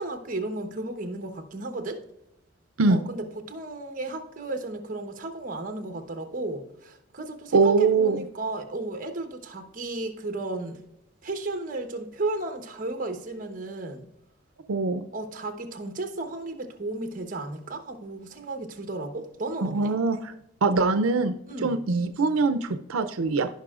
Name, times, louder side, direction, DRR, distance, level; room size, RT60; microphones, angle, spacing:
voice 1, 0.0-2.0 2.9-10.8 11.2-14.1 15.1-19.9 21.5-21.8, right 2 dB, 40° right, 1.1 m, -34 dB
voice 2, 7.5-8.2 14.7-15.1 19.6-20.3 20.6-23.5, right 4 dB, 85° right, 0.5 m, -23 dB
15.5 x 5.4 x 2.4 m
head